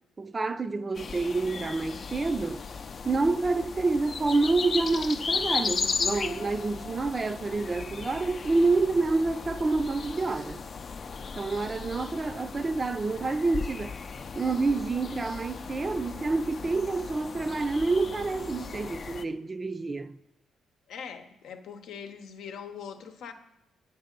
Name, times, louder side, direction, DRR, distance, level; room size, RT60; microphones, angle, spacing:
voice 1, 0.2-2.6 3.0-10.6 11.4-13.9 14.4-20.1, right 3 dB, 30° right, 0.4 m, -28 dB
sound 1, 0.9-19.2, left 5 dB, 45° left, 0.5 m, -36 dB
voice 2, 20.9-23.3, left 7 dB, 80° left, 0.7 m, -42 dB
7.5 x 6.7 x 5.2 m
cardioid pair, 90°, 0 cm